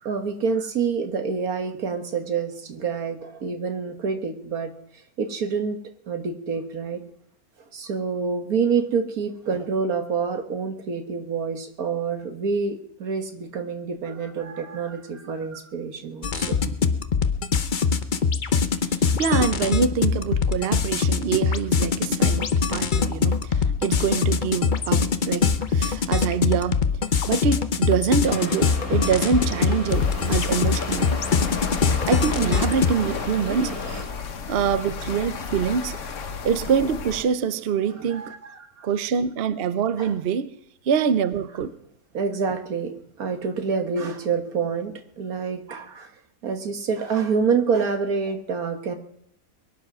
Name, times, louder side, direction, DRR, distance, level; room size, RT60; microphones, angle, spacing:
voice 1, 0.0-4.7 5.2-5.8 6.1-7.0 7.7-16.7 32.4-32.6 38.0-38.9 40.0-40.1 42.1-46.1 46.4-48.9, right 5 dB, 80° right, 1.9 m, -27 dB
sound 1, 16.2-32.9, left 5 dB, 40° left, 0.8 m, -23 dB
voice 2, 19.2-26.8 27.3-31.1 32.1-33.8 34.5-36.0 36.4-38.3 38.8-40.5 40.8-41.7, right 7 dB, 50° right, 0.8 m, -25 dB
sound 2, 28.2-34.0, left 2 dB, 85° left, 3.2 m, -34 dB
sound 3, 29.9-37.2, left 6 dB, 60° left, 1.4 m, -33 dB
22.0 x 10.0 x 6.1 m
omnidirectional pair, 1.5 m